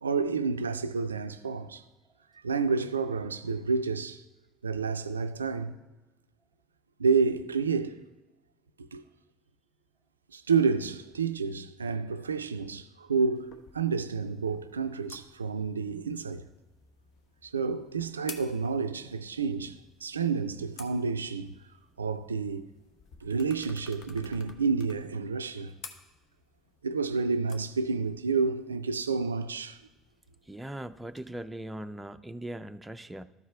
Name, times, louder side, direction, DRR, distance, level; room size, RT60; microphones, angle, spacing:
voice 1, 0.0-1.8 2.3-4.2 4.6-5.7 7.0-8.0 8.8-9.0 10.3-16.5 17.4-21.5 22.0-22.7 23.2-25.7 26.8-29.8, right 5 dB, 90° right, 0.3 m, -29 dB
sound 1, 13.4-31.2, left 5 dB, 55° left, 1.0 m, -54 dB
voice 2, 30.5-33.2, right 1 dB, 10° right, 0.5 m, -40 dB
12.5 x 4.7 x 4.2 m
hypercardioid pair, 60°, 0 cm